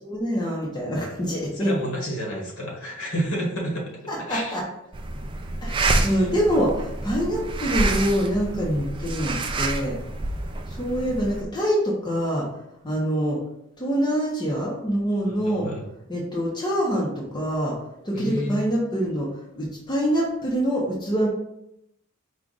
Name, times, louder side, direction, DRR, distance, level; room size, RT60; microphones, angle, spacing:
voice 1, 0.0-1.7 4.1-4.6 5.6-10.0 10.7-12.5 12.8-13.4 13.8-15.7 16.1-17.8 18.0-19.3 19.6-21.3, equal, 20° left, -4 dB, 0.8 m, -25 dB
voice 2, 1.5-3.9 4.3-4.6 6.0-6.3 15.2-15.8 18.1-18.6, equal, 65° left, -2 dB, 1.4 m, -30 dB
sound 1, 4.9-11.4, right 2 dB, 25° right, 0.3 m, -28 dB
4.7 x 2.4 x 3.9 m, 0.82 s
head